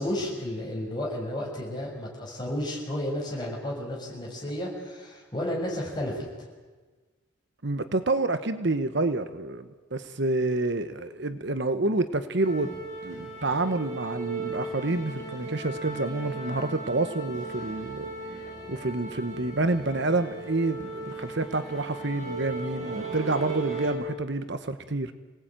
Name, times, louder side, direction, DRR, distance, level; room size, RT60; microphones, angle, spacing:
voice 1, 0.0-6.2, left 1 dB, 20° left, -2 dB, 6.5 m, -32 dB
voice 2, 7.6-12.7 13.0-18.1 18.3-25.1, right 2 dB, 55° right, 10 dB, 1.1 m, -28 dB
sound 1, 12.4-23.9, right 3 dB, 35° right, 7.7 m, -37 dB
27.0 x 18.5 x 9.0 m, 1.3 s
head